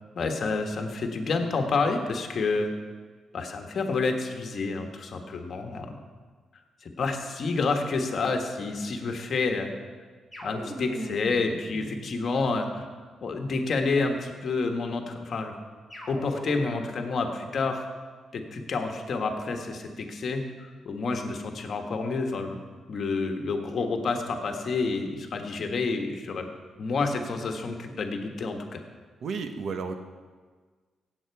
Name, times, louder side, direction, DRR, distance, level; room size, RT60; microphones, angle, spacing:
voice 1, 0.1-2.7 3.3-6.0 6.8-9.7 10.4-12.9 13.2-15.5 16.1-17.8 18.3-22.6 22.9-26.5 26.8-28.8, left 3 dB, 50° left, 4 dB, 1.5 m, -29 dB
sound 1, 10.3-12.8 15.9-16.9, equal, ahead, 3.3 m, -40 dB
voice 2, 29.2-29.9, right 5 dB, 65° right, 7 dB, 1.1 m, -32 dB
17.0 x 8.0 x 4.7 m, 1.5 s
cardioid pair, 105°, 0 cm